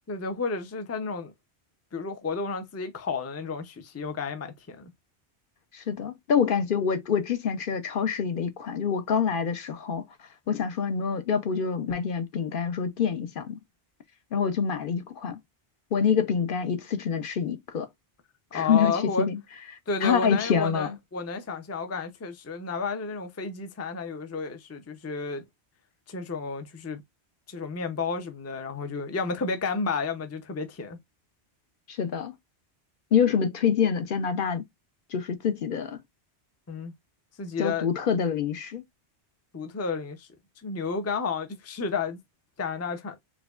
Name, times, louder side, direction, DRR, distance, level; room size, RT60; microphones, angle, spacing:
voice 1, 0.1-1.3 1.9-4.9 18.5-19.3 19.9-25.4 26.1-27.0 27.5-31.0 36.7-36.9 37.4-37.9 39.5-40.3 40.6-42.2 42.6-43.2, left 4 dB, 20° left, 0.4 m, -31 dB
voice 2, 5.7-10.0 10.5-13.6 14.3-15.4 15.9-17.9 18.5-19.4 20.0-21.0 31.9-32.3 33.1-34.6 35.1-36.0 37.6-38.8, left 7 dB, 60° left, 0.7 m, -26 dB
4.8 x 2.2 x 2.3 m
omnidirectional pair, 1.1 m